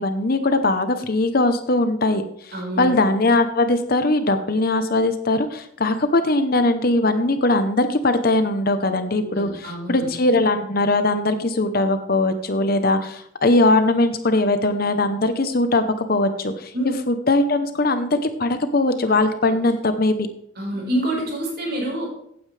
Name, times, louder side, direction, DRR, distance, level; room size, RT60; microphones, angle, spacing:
voice 1, 0.0-16.7 17.1-20.2, left 2 dB, 45° left, 9 dB, 0.8 m, -20 dB
voice 2, 2.5-3.0 9.1-10.1 16.7-16.9 19.1-19.2 20.6-22.1, right 1 dB, 50° right, -1 dB, 4.5 m, -27 dB
15.0 x 9.2 x 3.3 m, 0.70 s
head